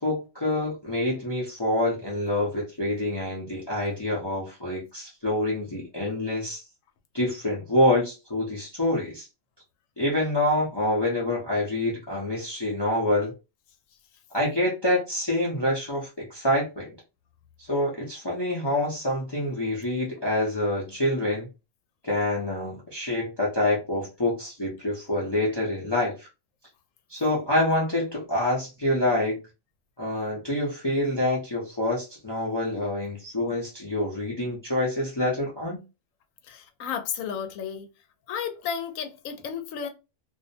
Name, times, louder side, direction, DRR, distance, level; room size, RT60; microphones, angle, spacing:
voice 1, 0.0-6.6 7.1-9.3 10.0-13.3 14.3-16.9 17.7-21.5 22.0-26.3 27.1-29.4 30.0-35.8, left 1 dB, 25° left, 0.6 m, -26 dB
voice 2, 36.4-37.9 38.3-39.9, left 7 dB, 90° left, 1.0 m, -33 dB
2.5 x 2.1 x 2.6 m
omnidirectional pair, 1.3 m